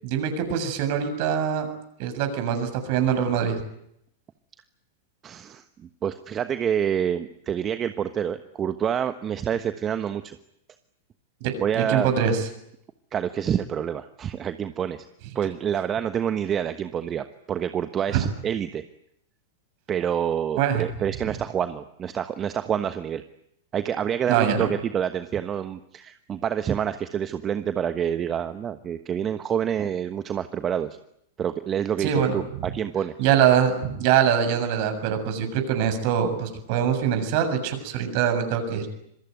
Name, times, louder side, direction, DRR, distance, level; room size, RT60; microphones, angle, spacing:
voice 1, 0.0-1.7 2.0-3.6 11.4-12.5 18.1-18.3 20.6-20.9 24.3-24.7 32.0-32.7 33.2-38.9, right 8 dB, 50° right, 7 dB, 7.1 m, -23 dB
voice 2, 5.2-5.6 6.0-10.4 11.6-12.1 13.1-15.0 15.3-18.8 19.9-23.2 23.7-30.9 31.4-33.1, right 9 dB, 25° right, 10 dB, 1.3 m, -27 dB
26.5 x 23.0 x 9.4 m, 0.77 s
figure-of-eight pair, 100°, 0 cm